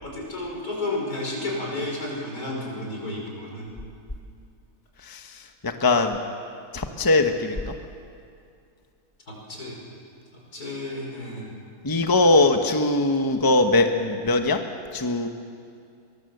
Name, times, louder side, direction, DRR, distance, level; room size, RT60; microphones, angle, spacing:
voice 1, 0.0-3.7 9.3-9.8 10.5-11.6 12.2-12.4, left 2 dB, 80° left, -1 dB, 5.8 m, -32 dB
voice 2, 5.6-6.2 6.7-7.7 11.8-14.6 14.9-15.3, left 2 dB, 15° left, 5 dB, 1.1 m, -21 dB
23.0 x 21.0 x 7.9 m, 2.4 s
omnidirectional pair, 1.6 m